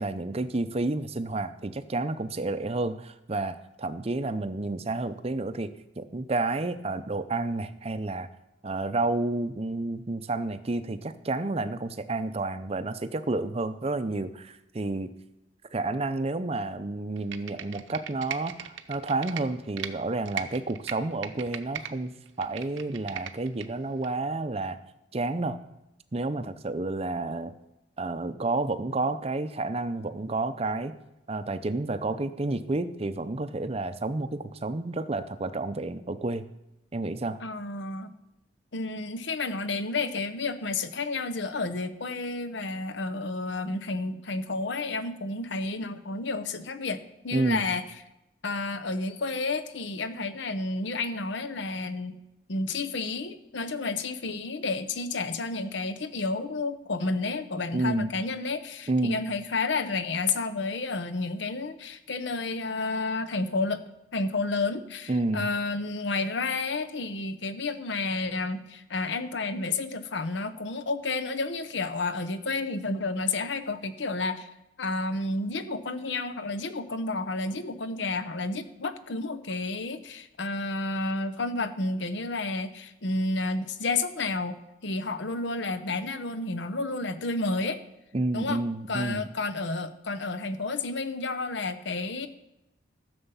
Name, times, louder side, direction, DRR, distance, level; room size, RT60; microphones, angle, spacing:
voice 1, 0.0-5.7 6.0-8.3 8.6-15.1 15.7-22.1 22.4-24.8 25.1-25.6 26.1-27.5 28.0-30.9 31.3-36.5 36.9-37.4 47.3-47.6 57.7-58.1 58.9-59.2 65.1-65.5 88.1-89.2, right 2 dB, 30° right, 11 dB, 0.5 m, -30 dB
Computer keyboard, 17.2-19.9 20.3-21.9 22.3-23.7 24.0-24.1, right 8 dB, 80° right, 0.7 m, -38 dB
voice 2, 37.4-38.1 38.7-47.8 48.4-52.1 52.5-63.8 64.1-74.5 74.8-84.6 84.8-87.8 88.3-92.3, left 3 dB, 70° left, 11 dB, 0.8 m, -31 dB
13.5 x 6.9 x 5.6 m, 0.93 s
head